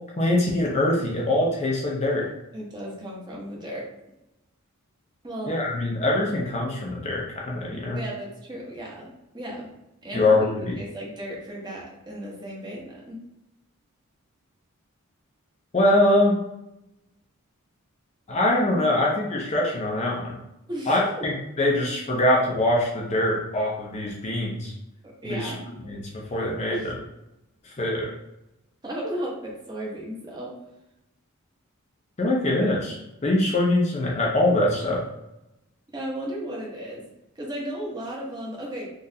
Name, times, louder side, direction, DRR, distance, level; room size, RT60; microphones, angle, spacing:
voice 1, 0.2-2.3 5.5-8.0 10.1-10.7 15.7-16.4 18.3-20.4 20.9-24.7 25.2-25.5 25.9-27.0 27.8-28.1 32.2-35.0, left 1 dB, 30° left, -2 dB, 0.5 m, -23 dB
voice 2, 2.5-3.9 5.2-5.5 8.0-9.7 10.0-10.3 10.8-13.2 20.7-21.3 25.0-25.6 26.7-26.9 28.8-30.5 35.9-37.0 37.3-38.9, right 1 dB, 20° right, -4 dB, 0.8 m, -35 dB
3.8 x 2.5 x 2.7 m, 0.87 s
head